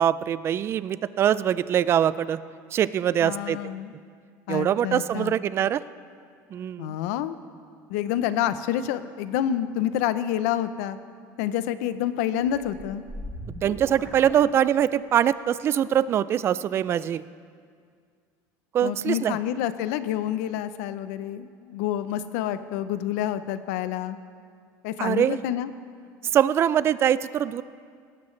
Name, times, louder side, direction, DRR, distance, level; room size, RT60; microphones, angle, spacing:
voice 1, 0.0-2.4 2.7-3.7 4.5-5.8 6.5-7.0 13.6-17.2 18.7-19.4 25.0-25.4 26.3-27.6, right 10 dB, 35° right, 17 dB, 0.3 m, -23 dB
voice 2, 3.2-3.9 4.5-5.3 6.8-7.4 7.9-11.0 11.4-13.0 18.8-24.2 24.8-25.7, left 11 dB, 90° left, 13 dB, 0.6 m, -28 dB
sound 1, 12.4-15.1, equal, ahead, 1.2 m, -40 dB
18.5 x 13.0 x 3.2 m, 2.1 s
cardioid pair, 145°, 8 cm